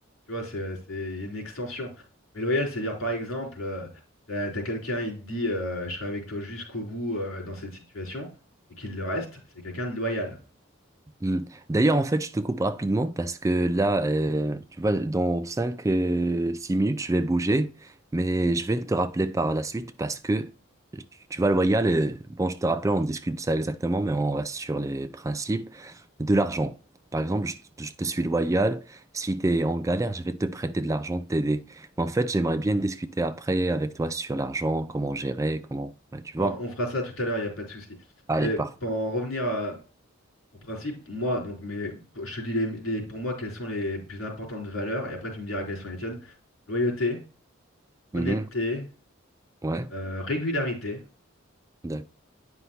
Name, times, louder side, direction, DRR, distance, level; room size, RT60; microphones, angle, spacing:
voice 1, 0.3-1.9 2.3-3.9 4.3-8.3 8.8-9.3 9.6-10.4 36.4-37.9 38.4-39.8 40.6-46.3 46.7-47.2 48.1-48.9 49.9-51.0, left 1 dB, 80° left, 3.8 m, -31 dB
voice 2, 11.2-20.5 20.9-21.0 21.3-26.8 27.1-36.6 38.3-38.7 48.1-48.5 49.6-49.9 51.8-52.1, right 2 dB, 15° right, 0.3 m, -26 dB
9.6 x 5.6 x 2.7 m
head